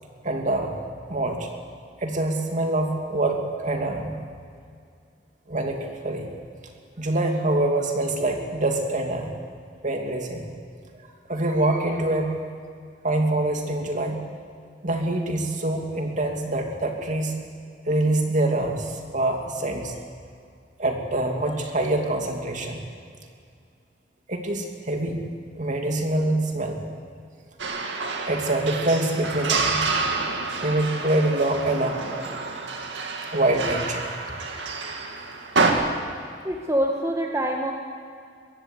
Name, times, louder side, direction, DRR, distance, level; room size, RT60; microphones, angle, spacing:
voice 1, 0.2-0.7 1.1-1.5 2.0-4.2 5.5-6.3 7.0-9.3 9.8-10.5 11.3-12.4 13.0-14.2 14.8-17.4 17.9-19.9 20.8-22.8 24.3-25.2 25.5-26.8 28.2-29.9 30.6-32.0 33.3-34.0, right 2 dB, 45° right, 3 dB, 2.7 m, -25 dB
sound 1, 27.6-35.7, right 4 dB, 75° right, 2.3 m, -28 dB
voice 2, 36.4-37.7, right 1 dB, 15° right, 1 dB, 1.5 m, -25 dB
22.5 x 16.0 x 8.4 m, 2.3 s
head